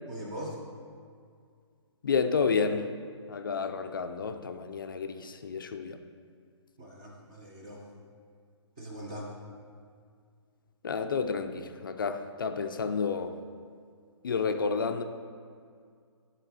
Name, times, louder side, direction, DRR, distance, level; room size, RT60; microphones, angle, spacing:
voice 1, 0.1-0.6 6.8-7.8 8.8-9.3, equal, 10° right, -2 dB, 0.4 m, -41 dB
voice 2, 2.0-2.9 3.3-6.0 10.8-13.4 14.2-15.0, left 5 dB, 45° left, 8 dB, 0.4 m, -30 dB
9.8 x 4.2 x 4.0 m, 2.2 s
hypercardioid pair, 175°, 15 cm